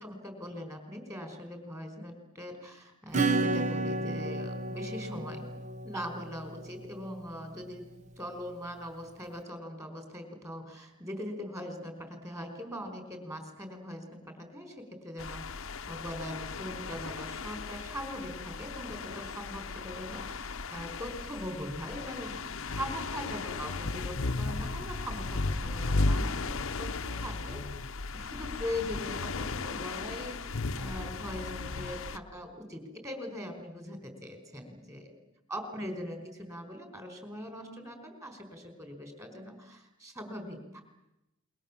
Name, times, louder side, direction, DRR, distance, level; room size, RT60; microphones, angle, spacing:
voice 1, 0.0-5.5 5.8-7.9 8.2-27.6 28.1-35.1 35.5-40.8, equal, 15° right, 6 dB, 4.8 m, -41 dB
Acoustic guitar / Strum, 3.1-7.4, right 2 dB, 35° right, 1.1 m, -32 dB
sound 1, 15.2-32.2, left 3 dB, 70° left, 0.9 m, -35 dB
28.5 x 23.0 x 7.4 m, 0.93 s
head